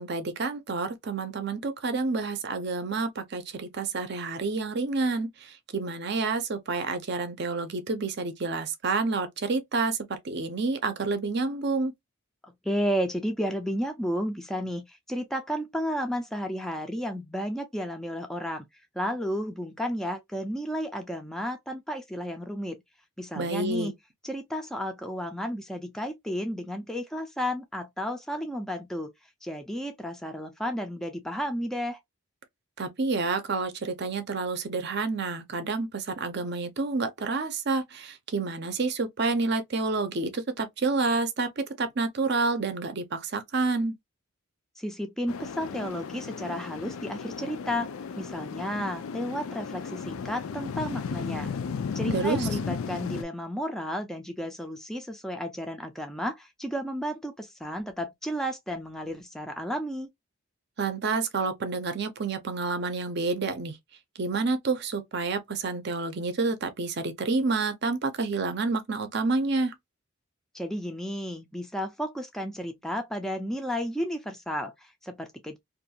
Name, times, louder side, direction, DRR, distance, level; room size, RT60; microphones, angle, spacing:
voice 1, 0.0-11.9 23.3-23.9 32.8-43.9 52.1-52.5 60.8-63.7 64.2-69.7, right 3 dB, 50° right, 0.6 m, -29 dB
voice 2, 12.4-18.7 19.0-22.8 23.2-23.9 24.2-29.1 29.4-32.0 44.8-51.5 51.9-60.1 70.5-75.6, equal, ahead, 0.4 m, -32 dB
sound 1, 45.3-53.2, left 5 dB, 80° left, 0.4 m, -35 dB
2.5 x 2.3 x 2.7 m
head